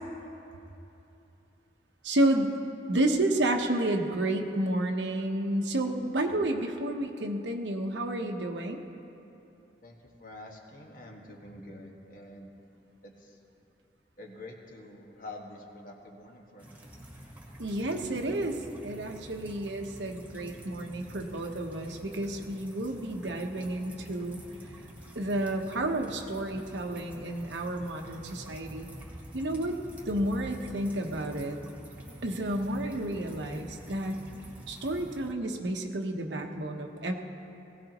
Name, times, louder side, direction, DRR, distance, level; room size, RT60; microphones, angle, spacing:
voice 1, 2.0-2.6 2.9-8.8 17.6-18.6 18.8-24.4 25.1-28.9 29.3-29.8 30.1-31.6 32.2-34.2 34.7-37.1, right 1 dB, 90° right, 3 dB, 1.1 m, -30 dB
voice 2, 9.8-12.5 13.0-13.4 14.2-16.8, left 1 dB, 50° left, 0 dB, 1.6 m, -47 dB
sound 1, 16.6-35.3, right 1 dB, 10° right, 1.6 m, -47 dB
20.0 x 16.5 x 3.0 m, 2.9 s
head